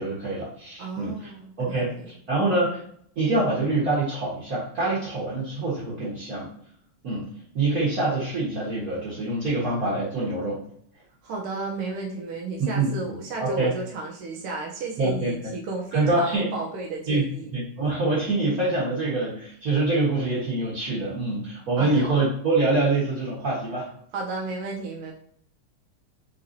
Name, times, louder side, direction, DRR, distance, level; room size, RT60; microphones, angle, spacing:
voice 1, 0.0-1.3 1.6-2.8 3.2-6.5 7.0-7.3 7.5-10.6 12.6-12.9 13.4-13.7 15.0-15.3 15.9-16.5 17.1-17.2 17.5-23.9, right 2 dB, 45° right, -8 dB, 1.5 m, -25 dB
voice 2, 0.8-2.1 11.2-17.5 21.8-22.1 24.1-25.1, right 3 dB, 85° right, -1 dB, 1.6 m, -33 dB
4.0 x 4.0 x 2.6 m, 0.64 s
omnidirectional pair, 2.4 m